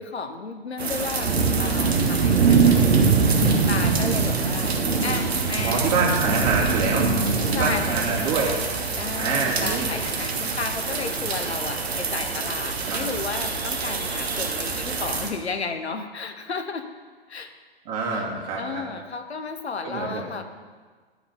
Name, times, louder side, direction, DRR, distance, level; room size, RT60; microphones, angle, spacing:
voice 1, 0.0-5.9 7.5-8.1 8.9-16.9 17.3-17.5 18.1-18.3 18.5-20.4, left 4 dB, 85° left, 8 dB, 0.8 m, -33 dB
sound 1, 0.8-15.3, right 4 dB, 75° right, 1.2 m, -23 dB
voice 2, 5.6-7.1 7.5-8.6 9.2-9.9 12.9-13.0 17.9-18.8 19.8-20.2, right 4 dB, 40° right, -3 dB, 2.2 m, -26 dB
10.0 x 5.0 x 5.3 m, 1.5 s
figure-of-eight pair, 115°, 32 cm